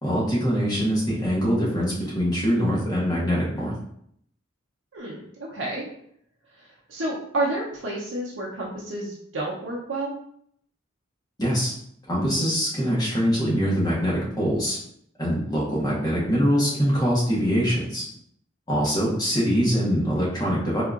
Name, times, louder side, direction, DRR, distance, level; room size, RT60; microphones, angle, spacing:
voice 1, 0.0-3.7 11.4-11.7 12.1-14.8 15.2-18.0 18.7-20.8, equal, 20° left, -5 dB, 1.0 m, -23 dB
voice 2, 4.9-5.8 6.5-10.1 19.4-19.5, right 2 dB, 70° right, -4 dB, 0.7 m, -30 dB
3.7 x 2.4 x 2.4 m, 0.68 s
head